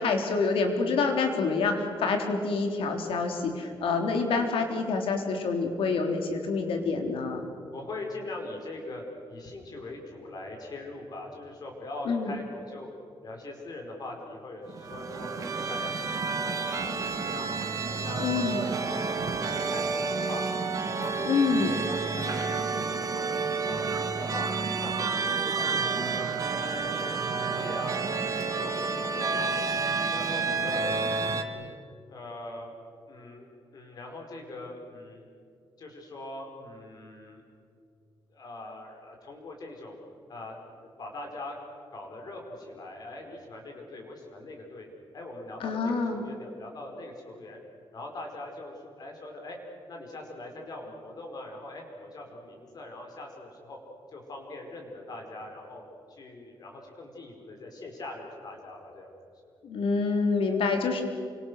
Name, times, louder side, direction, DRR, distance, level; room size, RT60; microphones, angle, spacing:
voice 1, 0.0-7.5 12.1-12.4 18.2-18.6 21.3-21.8 45.6-46.2 59.6-61.0, left 4 dB, 80° left, 4 dB, 3.6 m, -27 dB
voice 2, 7.7-9.0 9.3-12.9 13.2-17.6 18.0-20.4 20.8-23.3 23.7-24.5 24.8-29.6 30.1-30.8 31.2-31.6 32.1-32.7 33.1-33.5 33.7-35.2 35.8-37.4 38.3-40.0 40.3-40.5 41.0-41.5 41.9-44.9 45.1-47.6 47.9-49.6 49.9-53.8 54.1-55.8 56.1-59.1 59.4-59.5, left 2 dB, 45° left, 1 dB, 5.0 m, -42 dB
sound 1, 14.7-31.4, right 4 dB, 40° right, 1.8 m, -30 dB
29.5 x 25.0 x 6.5 m, 2.4 s
wide cardioid pair, 175°, 9 cm